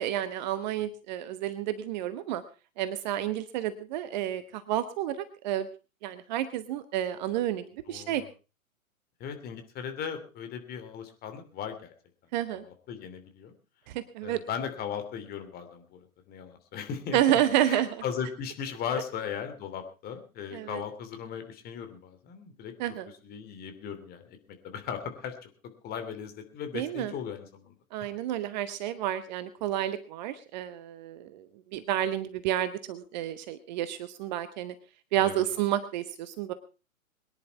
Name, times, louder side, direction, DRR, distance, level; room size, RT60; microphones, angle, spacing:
voice 1, 0.0-2.4 2.8-5.7 6.0-8.2 12.3-12.6 13.9-14.4 17.1-18.0 20.5-20.8 22.8-23.1 26.7-27.1 27.9-31.5 31.7-34.7 35.1-36.5, right 12 dB, 30° right, 13 dB, 1.0 m, -30 dB
voice 2, 7.9-8.3 9.2-11.9 12.5-13.5 14.2-17.2 17.6-22.7 23.2-24.4 24.6-27.7 35.2-35.5, left 7 dB, 20° left, 7 dB, 2.9 m, -37 dB
22.5 x 10.5 x 4.6 m, 0.34 s
figure-of-eight pair, 125°, 42 cm